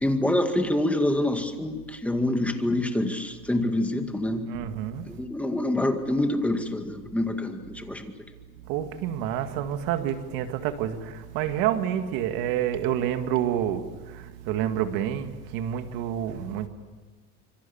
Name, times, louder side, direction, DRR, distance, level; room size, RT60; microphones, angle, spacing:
voice 1, 0.0-4.5 5.1-8.1, left 1 dB, 5° left, 2.0 m, -26 dB
voice 2, 4.5-5.1 8.7-16.7, right 10 dB, 80° right, 2.1 m, -28 dB
26.0 x 24.5 x 7.2 m
cardioid pair, 140°, 32 cm